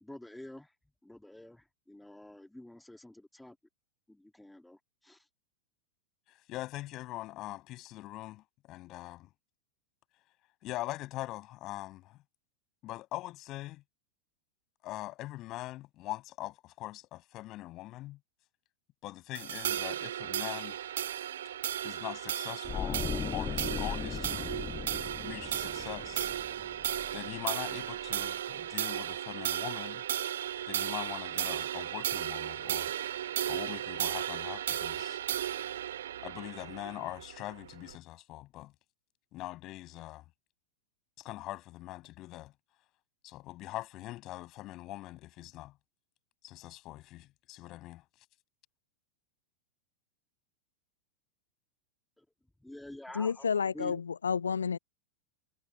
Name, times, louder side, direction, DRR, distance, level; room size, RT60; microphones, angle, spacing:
voice 1, 0.0-0.7 1.0-3.6 4.1-5.3 52.6-53.4 53.7-54.0, left 1 dB, 5° left, 2.0 m, -48 dB
voice 2, 6.5-9.3 10.6-12.2 12.8-13.8 14.8-18.2 19.0-20.8 21.8-23.0 23.3-24.5 25.1-26.3 27.1-30.0 30.7-32.9 33.4-35.2 36.2-38.7 39.3-40.2 41.2-42.5 43.2-45.7 46.4-48.0, left 17 dB, 35° left, 8.0 m, -42 dB
sound 1, 19.3-37.9, right 11 dB, 60° right, 1.9 m, -35 dB
sound 2, 22.6-27.7 28.0-28.3, left 7 dB, 20° left, 1.1 m, -38 dB
voice 3, 53.1-54.8, left 6 dB, 70° left, 0.6 m, -30 dB
figure-of-eight pair, 90°, 0 cm